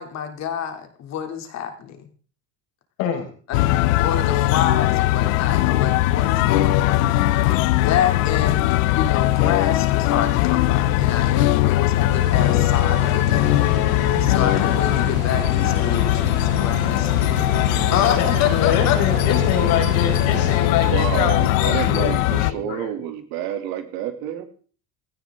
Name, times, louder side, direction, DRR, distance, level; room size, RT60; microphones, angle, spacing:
voice 1, 0.0-2.1 3.5-7.3 7.7-13.6 14.2-17.1 17.9-19.0, left 9 dB, 45° left, 5 dB, 3.2 m, -27 dB
voice 2, 3.0-3.3 18.2-22.9, left 8 dB, 65° left, 3 dB, 5.1 m, -25 dB
sound 1, 3.5-22.5, left 15 dB, 90° left, 0.9 m, -20 dB
sound 2, 12.1-20.6, right 6 dB, 40° right, 6.8 m, -32 dB
voice 3, 20.9-24.4, right 11 dB, 65° right, 6 dB, 3.0 m, -28 dB
17.0 x 15.0 x 3.8 m, 0.42 s
cardioid pair, 140°, 38 cm